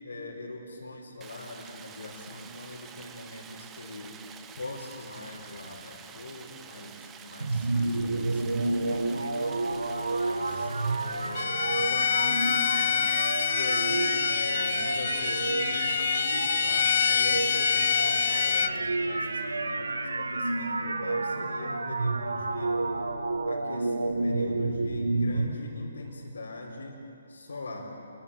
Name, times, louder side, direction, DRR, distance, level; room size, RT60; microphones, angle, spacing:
voice 1, 0.0-4.1 4.5-8.4 8.8-13.1 13.5-22.8 23.4-27.0 27.3-27.9, left 2 dB, 65° left, -5 dB, 4.6 m, -41 dB
Stream, 1.2-11.4, right 7 dB, 15° right, 1.2 m, -48 dB
sound 1, 7.4-25.5, right 2 dB, 70° right, 1.6 m, -30 dB
Bowed string instrument, 11.3-18.7, left 9 dB, 45° left, 0.7 m, -27 dB
29.0 x 22.0 x 7.7 m, 2.8 s
figure-of-eight pair, 135°, 0 cm